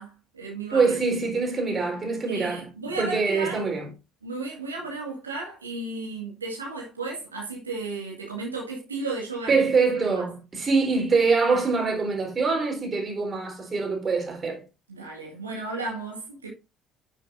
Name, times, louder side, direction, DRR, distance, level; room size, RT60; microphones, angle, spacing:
voice 1, 0.0-1.0 2.3-3.7 4.2-9.6 9.9-10.2 14.9-16.5, right 3 dB, 90° right, 2.2 m, -34 dB
voice 2, 0.7-2.7 3.0-3.9 9.5-14.7, right 4 dB, 35° right, 4.2 m, -24 dB
10.0 x 7.4 x 2.6 m
figure-of-eight pair, 50°, 0 cm